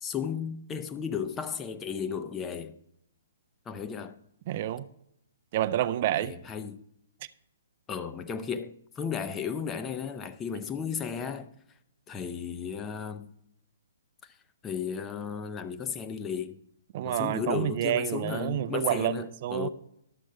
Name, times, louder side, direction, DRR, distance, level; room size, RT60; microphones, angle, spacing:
voice 1, 0.0-2.8 3.7-4.2 6.2-6.8 7.9-11.5 12.1-13.3 14.6-16.6 17.0-19.7, left 7 dB, 15° left, 0.6 m, -34 dB
voice 2, 4.5-4.9 5.5-6.3 16.9-19.7, right 12 dB, 40° right, 0.5 m, -28 dB
12.0 x 7.2 x 4.5 m
figure-of-eight pair, 125°, 0 cm